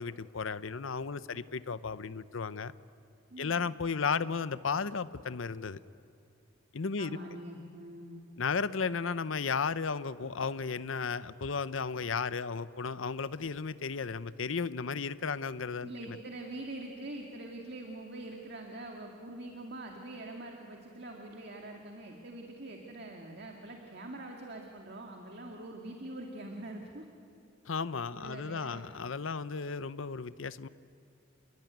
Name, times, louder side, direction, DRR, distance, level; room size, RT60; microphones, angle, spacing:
voice 1, 0.0-2.7 3.4-5.8 6.7-7.2 8.4-16.2 27.7-30.7, left 5 dB, 70° left, 15 dB, 0.7 m, -34 dB
voice 2, 3.3-3.7 7.0-8.3 15.8-27.1 28.1-28.9, right 1 dB, 50° right, 1 dB, 2.2 m, -44 dB
28.5 x 21.0 x 9.3 m, 2.6 s
head